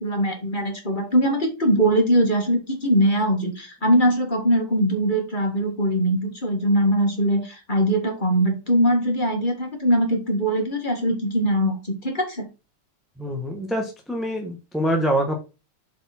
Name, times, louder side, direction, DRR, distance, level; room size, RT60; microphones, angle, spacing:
voice 1, 0.0-12.5, right 1 dB, 25° left, 3 dB, 2.1 m, -21 dB
voice 2, 13.2-15.4, equal, ahead, 2 dB, 1.0 m, -25 dB
7.9 x 4.3 x 4.3 m, 0.29 s
omnidirectional pair, 1.9 m